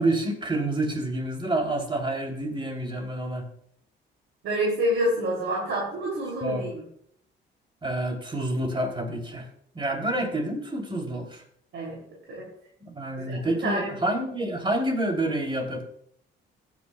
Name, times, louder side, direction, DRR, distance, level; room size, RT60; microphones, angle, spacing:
voice 1, 0.0-3.5 6.4-6.7 7.8-9.5 9.7-11.4 12.8-15.8, right 1 dB, 25° right, 2 dB, 3.3 m, -28 dB
voice 2, 4.4-6.8 11.7-12.0 12.3-12.4 13.3-13.9, equal, 75° right, -3 dB, 3.2 m, -27 dB
16.5 x 9.5 x 2.4 m, 0.67 s
cardioid pair, 90°, 20 cm